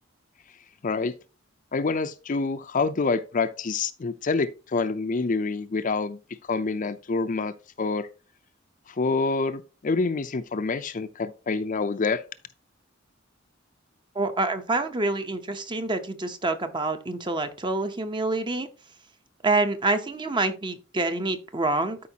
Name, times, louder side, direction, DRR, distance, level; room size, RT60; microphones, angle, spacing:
voice 1, 1.7-6.2 6.4-8.1 8.9-12.2, left 4 dB, 40° left, 0.5 m, -27 dB
voice 2, 14.1-18.7 19.4-22.0, right 2 dB, 25° right, 0.8 m, -27 dB
12.5 x 4.9 x 2.8 m
head